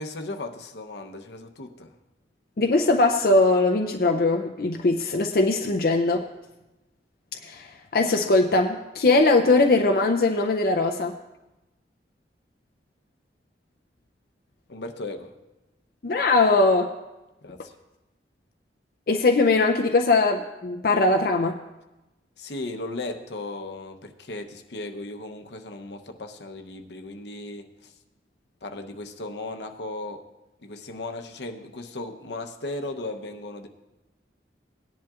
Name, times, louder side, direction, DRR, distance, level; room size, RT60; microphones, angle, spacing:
voice 1, 0.0-1.9 14.7-15.3 17.4-17.7 22.4-27.9 28.6-30.2 30.6-33.7, left 2 dB, 75° left, 5 dB, 0.8 m, -36 dB
voice 2, 2.6-6.3 7.4-7.7 7.9-11.1 16.0-16.9 19.1-21.6, left 2 dB, 55° left, 3 dB, 0.5 m, -20 dB
18.0 x 10.5 x 2.4 m, 1.0 s
head